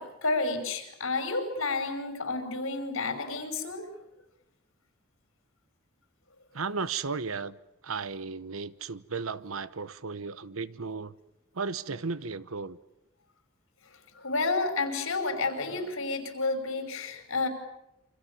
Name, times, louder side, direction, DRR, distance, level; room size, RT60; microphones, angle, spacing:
voice 1, 0.0-3.9 14.2-17.5, left 3 dB, 80° left, 5.6 m, -30 dB
voice 2, 6.5-7.6 7.8-11.1 11.5-12.8, right 4 dB, 80° right, 1.0 m, -35 dB
28.0 x 25.5 x 7.1 m
head